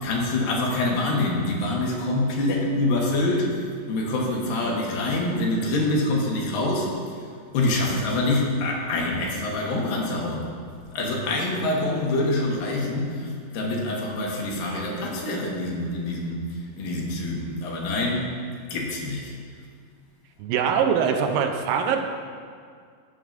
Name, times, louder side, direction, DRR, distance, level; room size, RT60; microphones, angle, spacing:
voice 1, 0.0-3.6 3.9-7.0 7.5-10.5 10.9-16.4 16.8-18.3 18.7-19.3, left 2 dB, 80° left, -2 dB, 2.9 m, -25 dB
voice 2, 20.4-22.0, right 7 dB, 85° right, 5 dB, 2.4 m, -23 dB
14.5 x 7.0 x 2.6 m, 2.1 s
omnidirectional pair, 4.0 m